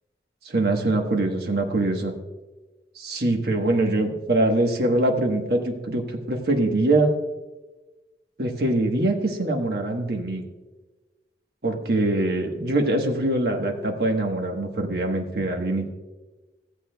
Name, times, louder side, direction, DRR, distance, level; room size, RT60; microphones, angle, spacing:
voice 1, 0.4-2.1 3.0-7.1 8.4-10.4 11.6-15.9, right 2 dB, 60° right, 3 dB, 1.2 m, -23 dB
16.5 x 8.3 x 2.3 m, 1.2 s
head